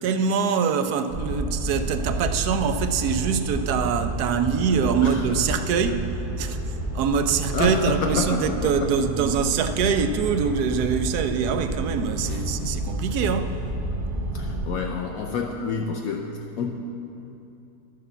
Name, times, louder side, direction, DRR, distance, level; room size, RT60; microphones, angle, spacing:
voice 1, 0.0-6.1 6.4-6.6 6.9-13.6, right 6 dB, 90° right, 8 dB, 1.2 m, -24 dB
sound 1, 1.1-14.6, right 1 dB, 30° right, 0.8 m, -30 dB
voice 2, 7.5-9.1 12.3-12.4 14.3-16.7, left 4 dB, 70° left, 1 dB, 1.1 m, -29 dB
11.5 x 6.7 x 6.8 m, 2.7 s
omnidirectional pair, 1.6 m